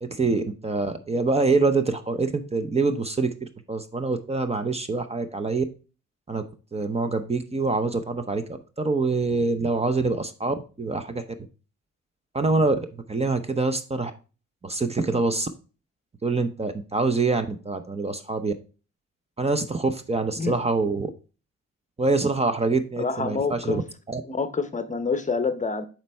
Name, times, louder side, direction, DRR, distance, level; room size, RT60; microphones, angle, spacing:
voice 1, 0.0-5.7 6.3-6.4 6.7-8.4 8.8-11.2 12.3-14.1 14.6-15.5 16.2-18.5 19.4-21.1 22.0-23.8 24.1-24.2, right 3 dB, 20° right, 0.7 m, -25 dB
voice 2, 23.0-23.8 24.2-25.9, left 4 dB, 25° left, 0.8 m, -27 dB
7.2 x 4.4 x 3.4 m
cardioid pair, 90°, 30 cm